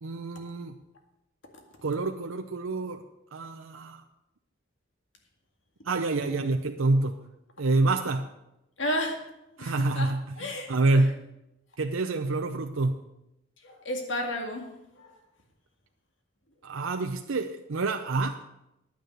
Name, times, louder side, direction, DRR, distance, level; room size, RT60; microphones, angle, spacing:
voice 1, 0.0-0.8 1.8-3.0 3.3-4.0 5.8-7.2 7.6-8.3 9.6-11.2 11.8-13.0 16.6-18.4, right 2 dB, 90° right, 5 dB, 0.7 m, -27 dB
voice 2, 8.8-9.2 9.6-11.0 13.6-14.7 15.0-15.2, left 1 dB, 70° left, 3 dB, 2.1 m, -33 dB
10.5 x 9.4 x 6.5 m, 0.87 s
head